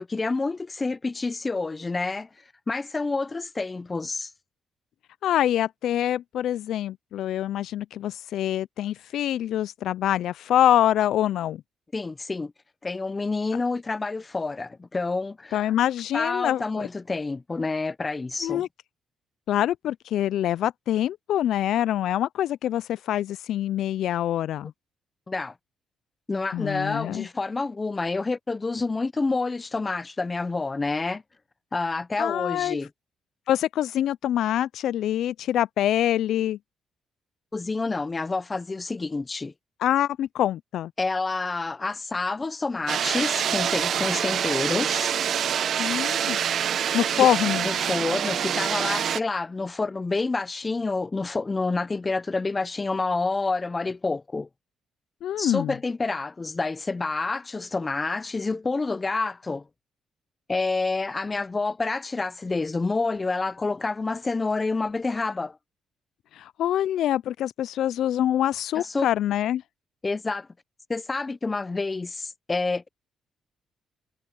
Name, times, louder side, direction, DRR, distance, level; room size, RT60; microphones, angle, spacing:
voice 1, 0.0-2.3 2.7-4.3 11.9-12.5 12.8-15.6 16.1-18.6 25.3-25.5 26.3-31.2 31.7-32.9 37.5-39.5 41.0-45.1 47.6-54.5 55.4-59.6 60.5-65.6 68.8-69.1 70.0-70.5 70.9-72.9, left 3 dB, 25° left, 0.7 m, -28 dB
voice 2, 5.2-11.6 15.5-16.9 18.4-18.7 19.5-24.7 26.5-27.3 32.2-32.8 33.5-36.6 39.8-40.9 45.8-46.4 46.9-47.7 55.2-55.7 66.3-69.6, left 11 dB, 75° left, 0.3 m, -25 dB
sound 1, 42.9-49.2, right 9 dB, 60° right, 1.0 m, -26 dB
cardioid pair, 90°, 0 cm